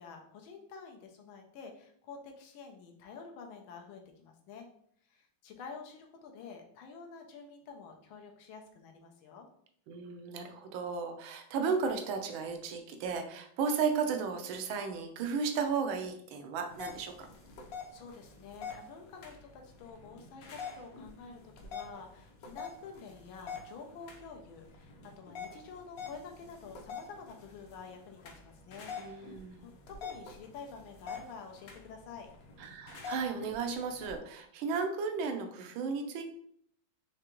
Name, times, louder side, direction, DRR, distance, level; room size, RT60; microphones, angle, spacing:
voice 1, 0.0-4.7 5.1-9.5 17.5-32.3, left 5 dB, 90° left, 3 dB, 1.5 m, -49 dB
voice 2, 9.9-17.3 29.0-29.7 32.6-36.2, right 5 dB, 85° right, 5 dB, 1.5 m, -34 dB
sound 1, 16.7-34.1, left 5 dB, 60° left, 1.0 m, -47 dB
4.9 x 3.3 x 3.0 m, 0.65 s
omnidirectional pair, 2.1 m